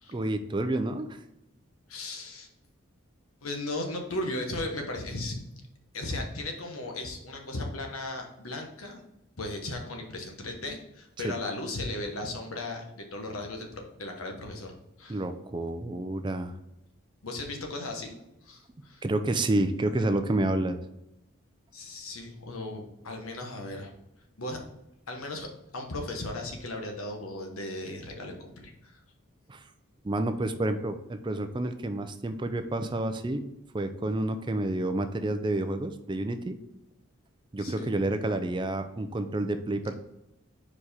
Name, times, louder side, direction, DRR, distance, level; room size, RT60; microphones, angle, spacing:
voice 1, 0.1-1.2 11.2-11.3 15.1-16.6 19.0-20.8 29.5-29.6 30.0-33.4 33.7-36.6 37.5-39.9, right 2 dB, 20° right, 8 dB, 0.4 m, -29 dB
voice 2, 1.9-2.5 3.4-5.4 5.9-9.0 9.4-15.2 17.2-19.0 21.7-23.9 24.4-24.6 25.1-29.0 37.6-37.9, left 2 dB, 90° left, 2 dB, 1.3 m, -36 dB
4.9 x 4.7 x 4.2 m, 0.88 s
head